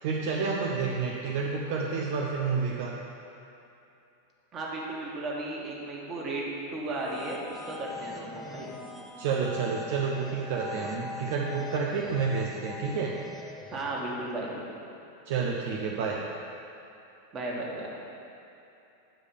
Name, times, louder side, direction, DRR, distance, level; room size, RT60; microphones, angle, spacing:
voice 1, 0.0-3.0 9.2-13.2 15.3-16.3, right 5 dB, 50° right, -2 dB, 0.7 m, -29 dB
voice 2, 4.5-6.4 6.7-8.7 13.7-14.7 17.3-17.9, right 2 dB, 25° right, -3 dB, 1.6 m, -35 dB
sound 1, 6.8-14.2, left 3 dB, 5° right, 0.8 m, -43 dB
8.7 x 4.8 x 5.5 m, 2.8 s
figure-of-eight pair, 90°, 0 cm